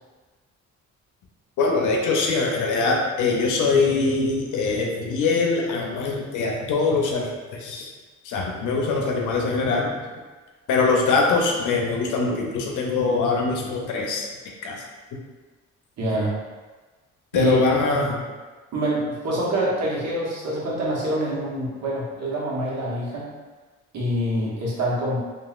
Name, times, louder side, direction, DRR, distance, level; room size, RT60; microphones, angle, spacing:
voice 1, 1.6-7.9 8.2-10.0 10.7-14.3 14.6-14.8 17.3-18.2, left 4 dB, 85° left, 0 dB, 0.6 m, -23 dB
voice 2, 16.0-16.3 17.3-17.5 18.7-23.3 23.9-25.2, right 1 dB, 60° right, -6 dB, 1.0 m, -25 dB
2.8 x 2.4 x 2.4 m, 1.3 s
cardioid pair, 90°, 30 cm